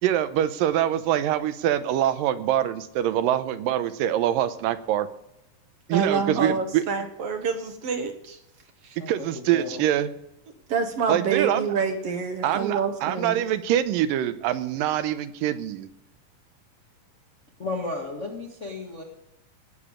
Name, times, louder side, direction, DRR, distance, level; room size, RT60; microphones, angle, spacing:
voice 1, 0.0-5.1 5.9-6.8 9.1-10.1 11.1-11.7 12.4-15.9, right 11 dB, 90° right, 12 dB, 2.5 m, -24 dB
voice 2, 5.9-8.4 8.8-9.0 10.7-13.5, right 6 dB, 60° right, 7 dB, 1.6 m, -27 dB
voice 3, 9.0-9.8 17.6-19.0, left 2 dB, 45° left, 0 dB, 1.0 m, -34 dB
18.5 x 6.9 x 5.1 m, 0.85 s
omnidirectional pair, 3.9 m